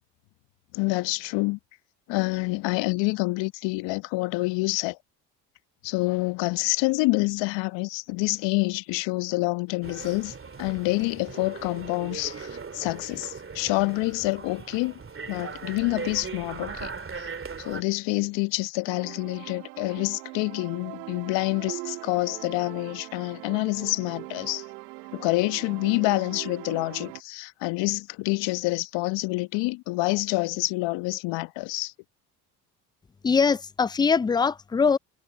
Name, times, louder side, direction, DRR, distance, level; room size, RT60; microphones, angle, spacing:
voice 1, 0.7-1.6 2.1-5.0 5.8-15.0 15.3-16.9 17.2-17.3 17.6-24.7 25.1-31.9, left 24 dB, 65° left, 1.2 m, -27 dB
sound 1, 9.8-17.8, right 5 dB, 25° right, 2.5 m, -39 dB
sound 2, 18.9-27.2, right 23 dB, 75° right, 2.4 m, -41 dB
voice 2, 33.2-35.0, left 5 dB, 10° left, 0.3 m, -22 dB
hypercardioid pair, 55°, 47 cm